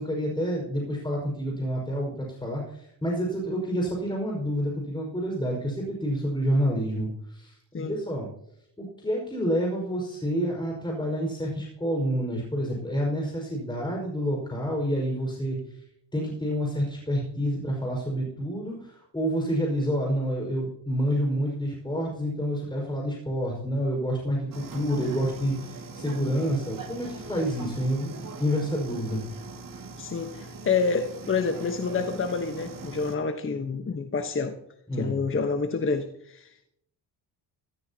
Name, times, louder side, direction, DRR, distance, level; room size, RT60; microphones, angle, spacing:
voice 1, 0.0-8.3 8.8-15.8 16.1-29.2 34.9-35.1, equal, 10° left, -2 dB, 5.4 m, -28 dB
sound 1, 24.5-33.2, right 4 dB, 45° right, 2.2 m, -41 dB
voice 2, 30.0-34.5 35.0-36.7, left 4 dB, 30° left, 6 dB, 1.2 m, -28 dB
16.0 x 13.5 x 2.9 m, 0.73 s
supercardioid pair, 75°, 44 cm